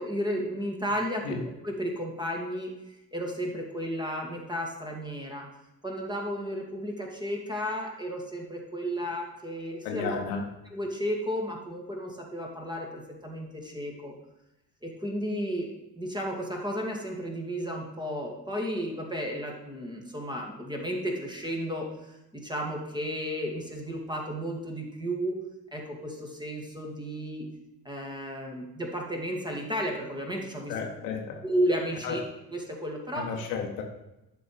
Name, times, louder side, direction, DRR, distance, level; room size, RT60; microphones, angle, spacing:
voice 1, 0.0-5.5 5.8-10.2 10.7-14.2 14.8-15.7 16.0-25.4 25.7-27.5 27.8-30.9 31.4-32.2 32.5-33.3, equal, 10° right, 0 dB, 2.3 m, -33 dB
voice 2, 9.8-10.4 30.7-31.4 32.0-32.2 33.2-33.8, left 5 dB, 70° left, 2 dB, 1.4 m, -33 dB
11.5 x 4.6 x 5.1 m, 0.93 s
figure-of-eight pair, 50°, 50 cm